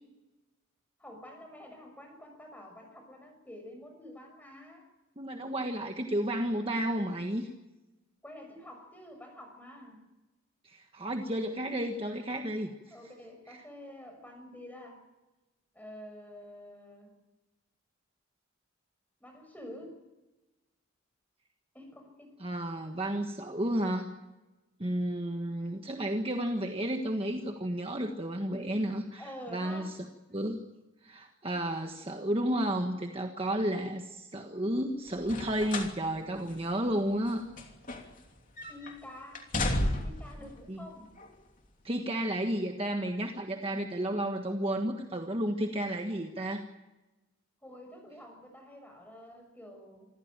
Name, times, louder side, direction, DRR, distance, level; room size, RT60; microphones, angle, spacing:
voice 1, 1.0-4.9 8.2-10.0 12.9-15.0 15.7-17.1 19.2-20.0 21.7-22.4 28.9-30.0 38.7-39.5 40.0-41.1 47.6-50.0, left 1 dB, 10° left, 4 dB, 6.2 m, -48 dB
voice 2, 5.2-7.5 10.6-12.7 13.5-13.6 22.4-24.1 24.8-29.2 29.5-29.9 30.3-30.7 31.0-37.5 40.7-40.9 41.8-46.6, right 1 dB, 25° right, 3 dB, 1.5 m, -32 dB
sound 1, 35.2-36.0 36.4-36.5 37.2-38.3 38.6-38.9 39.3-40.3 41.2-41.3, left 1 dB, 40° left, 3.1 m, -32 dB
27.0 x 15.0 x 9.1 m, 1.1 s
head